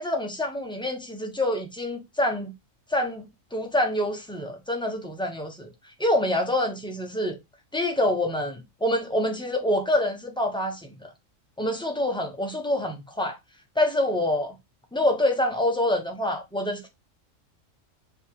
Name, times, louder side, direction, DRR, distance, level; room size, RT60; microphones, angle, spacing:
voice 1, 0.0-2.5 2.9-5.7 6.0-7.4 7.7-11.1 11.6-13.4 13.8-14.5 14.9-16.9, left 1 dB, 5° left, 0.5 m, -26 dB
5.3 x 2.9 x 3.2 m
omnidirectional pair, 1.4 m